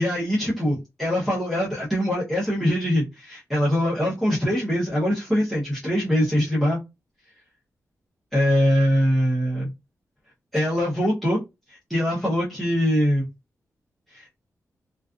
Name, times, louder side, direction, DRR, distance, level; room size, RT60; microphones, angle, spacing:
voice 1, 0.0-6.8 8.3-9.7 10.5-11.4 11.7-13.3 14.1-14.3, equal, ahead, 0.7 m, -23 dB
2.4 x 2.3 x 2.4 m
wide cardioid pair, 135°, 6 cm